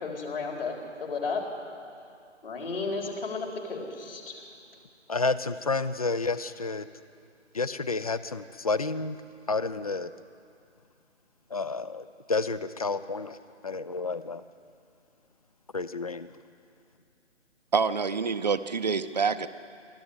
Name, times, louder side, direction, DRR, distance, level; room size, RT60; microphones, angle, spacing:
voice 1, 0.0-1.4 2.4-4.4, left 4 dB, 50° left, 1 dB, 4.3 m, -33 dB
voice 2, 5.1-6.9 7.5-9.2 9.5-10.1 11.5-13.4 13.6-14.4 15.7-16.3, left 3 dB, 30° left, 15 dB, 0.5 m, -30 dB
voice 3, 17.7-19.5, right 5 dB, 35° right, 11 dB, 0.7 m, -26 dB
24.0 x 14.5 x 9.8 m, 2.4 s
figure-of-eight pair, 145°, 37 cm